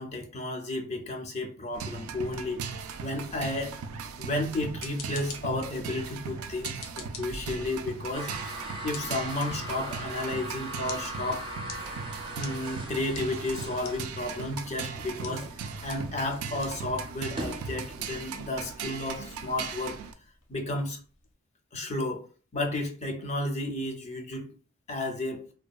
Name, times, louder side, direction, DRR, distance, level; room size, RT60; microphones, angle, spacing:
voice 1, 0.0-3.8 4.2-8.3 8.8-11.4 12.4-15.5 15.8-20.0 20.5-21.0 21.7-22.3 22.5-24.5 24.9-25.5, left 2 dB, 30° left, 0.4 m, -32 dB
sound 1, 1.7-20.1, right 5 dB, 90° right, 0.3 m, -39 dB
sound 2, 4.5-21.3, left 5 dB, 80° left, 0.5 m, -50 dB
sound 3, 8.1-18.0, right 1 dB, 25° right, 0.6 m, -40 dB
2.8 x 2.3 x 2.3 m
head